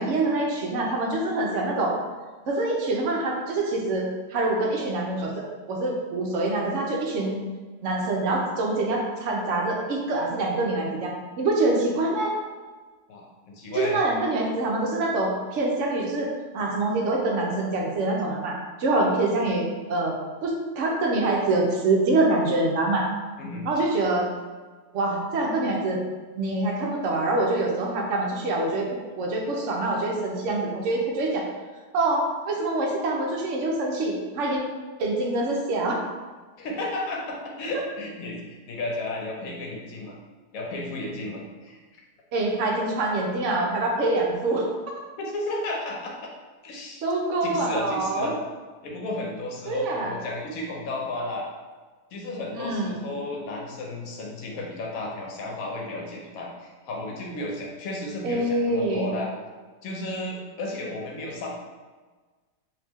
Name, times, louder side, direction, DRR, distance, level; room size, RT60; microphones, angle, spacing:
voice 1, 0.0-1.9 2.5-5.3 5.7-7.4 7.8-12.3 13.7-16.3 16.5-20.1 20.4-23.1 23.6-24.3 24.9-26.0 26.4-28.9 29.2-31.4 31.9-34.6 35.0-36.0 42.3-44.7 47.0-48.3 49.7-50.1 52.5-53.0 58.2-59.1, right 2 dB, 65° right, -1 dB, 0.8 m, -25 dB
voice 2, 13.1-14.0 23.4-23.7 36.6-40.1 40.5-41.8 45.2-46.3 46.6-47.0 47.4-48.3 48.8-51.5 52.1-59.3 59.8-61.5, left 2 dB, 65° left, -1 dB, 1.1 m, -33 dB
3.0 x 2.8 x 3.5 m, 1.4 s
omnidirectional pair, 1.7 m